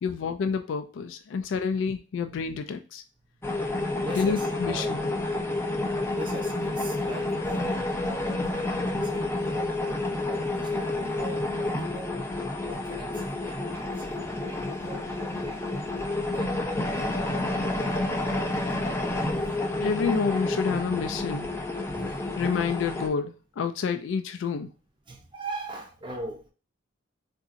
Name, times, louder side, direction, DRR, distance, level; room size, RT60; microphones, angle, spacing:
voice 1, 0.0-3.0 4.1-4.9 19.8-21.5 22.4-24.7, left 5 dB, 75° left, 0.3 m, -28 dB
sound 1, 3.4-23.1, left 2 dB, 15° left, 0.4 m, -29 dB
voice 2, 4.0-5.0 6.1-12.2 12.6-18.1 19.3-20.0 21.9-22.3 25.1-26.5, right 1 dB, 25° right, 0.6 m, -42 dB
3.8 x 2.6 x 2.5 m
head